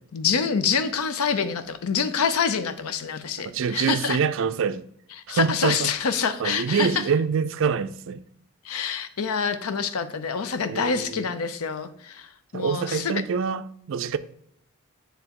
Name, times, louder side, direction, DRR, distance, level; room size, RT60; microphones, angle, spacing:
voice 1, 0.1-4.2 5.3-7.0 8.6-13.2, left 6 dB, 80° left, 0.6 m, -26 dB
voice 2, 3.4-4.9 5.3-5.9 6.4-8.2 10.7-11.3 12.5-14.2, right 6 dB, 60° right, 0.3 m, -25 dB
9.8 x 3.4 x 2.9 m
head